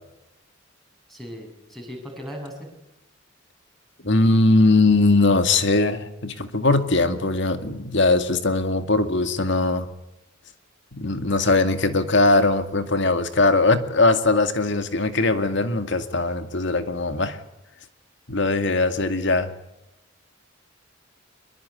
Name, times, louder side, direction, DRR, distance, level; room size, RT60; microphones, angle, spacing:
voice 1, 1.1-2.7, equal, ahead, 1 dB, 7.5 m, -37 dB
voice 2, 4.0-9.9 10.9-17.4 18.3-19.5, left 2 dB, 60° left, 9 dB, 2.2 m, -20 dB
24.0 x 22.0 x 9.8 m, 0.89 s
head